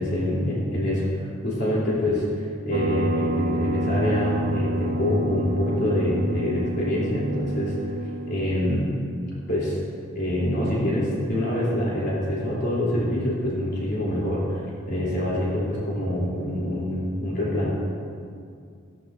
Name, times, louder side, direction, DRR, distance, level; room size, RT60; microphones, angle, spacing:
voice 1, 0.0-2.2 2.6-7.9 8.3-8.9 9.5-9.8 10.1-17.7, left 1 dB, 55° left, -7 dB, 3.2 m, -25 dB
sound 1, 2.7-8.5, right 1 dB, 45° right, 0.7 m, -29 dB
15.0 x 14.0 x 2.6 m, 2.3 s
head